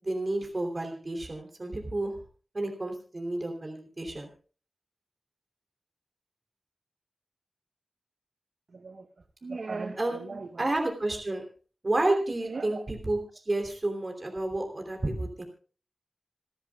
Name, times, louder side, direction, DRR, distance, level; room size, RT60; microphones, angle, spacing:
voice 1, 0.0-2.1 2.5-4.3 10.0-11.4 11.8-15.4, right 2 dB, 45° right, 3 dB, 3.1 m, -31 dB
voice 2, 8.7-9.1 9.4-10.7 12.4-12.8, right 3 dB, 80° right, 7 dB, 1.1 m, -38 dB
28.0 x 10.5 x 2.3 m, 0.38 s
wide cardioid pair, 70°, 0 cm